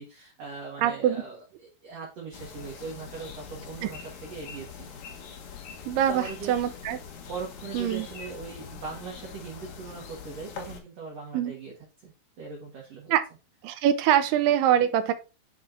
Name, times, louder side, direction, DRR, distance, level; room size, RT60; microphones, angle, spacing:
voice 1, 0.0-4.9 5.9-6.5 7.3-11.7 12.0-13.1, right 4 dB, 55° right, 2.2 m, -40 dB
voice 2, 0.8-1.2 3.8-3.9 5.9-7.0 7.7-8.1 11.3-11.5 13.1-13.2 13.6-15.1, right 10 dB, 85° right, 2.6 m, -24 dB
sound 1, 2.3-10.8, left 6 dB, 65° left, 2.2 m, -43 dB
10.0 x 4.7 x 2.6 m
omnidirectional pair, 4.6 m